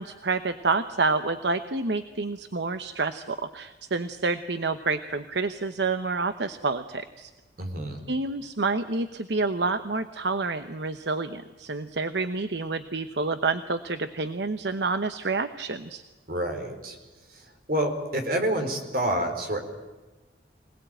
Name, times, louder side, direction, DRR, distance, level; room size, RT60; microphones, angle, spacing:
voice 1, 0.0-7.3 8.1-16.0, right 3 dB, 70° right, 10 dB, 1.0 m, -28 dB
voice 2, 7.6-8.0 16.3-17.0 17.7-19.6, right 1 dB, 50° right, 4 dB, 4.4 m, -28 dB
25.5 x 19.0 x 9.1 m, 1.2 s
head